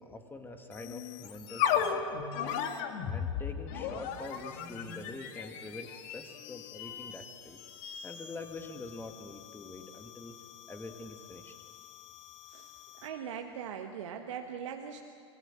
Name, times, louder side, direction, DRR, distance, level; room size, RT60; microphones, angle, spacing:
voice 1, 0.0-2.0 3.1-7.6 8.0-10.3 10.7-11.5, left 2 dB, 15° left, 5 dB, 2.3 m, -45 dB
sound 1, 0.7-13.2, left 8 dB, 50° left, 2.1 m, -38 dB
voice 2, 13.0-15.0, right 8 dB, 70° right, 4 dB, 1.4 m, -40 dB
26.0 x 20.0 x 7.6 m, 2.5 s
hypercardioid pair, 95°, 16 cm